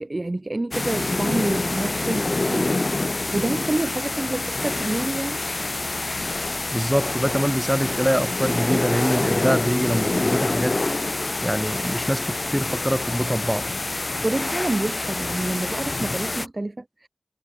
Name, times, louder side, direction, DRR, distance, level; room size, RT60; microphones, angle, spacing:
voice 1, 0.0-5.4 14.2-17.1, right 2 dB, 50° right, 5.2 m, -28 dB
sound 1, 0.7-16.5, left 2 dB, 65° left, 5.2 m, -26 dB
voice 2, 6.7-10.8 11.4-13.7, equal, 5° right, 7.7 m, -24 dB
wide cardioid pair, 50°, 0 cm